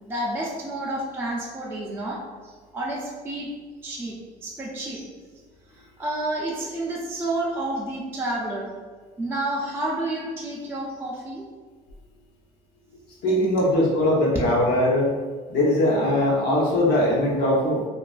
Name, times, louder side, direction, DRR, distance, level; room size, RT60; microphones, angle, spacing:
voice 1, 0.1-2.2 2.7-3.5 3.8-4.1 4.4-5.1 6.0-8.7 9.2-11.5 13.3-13.7, right 1 dB, 15° right, -4 dB, 0.4 m, -30 dB
voice 2, 13.2-15.1 15.5-17.9, left 1 dB, 80° left, -4 dB, 0.8 m, -21 dB
2.4 x 2.2 x 2.2 m, 1.5 s
cardioid pair, 110°, 17 cm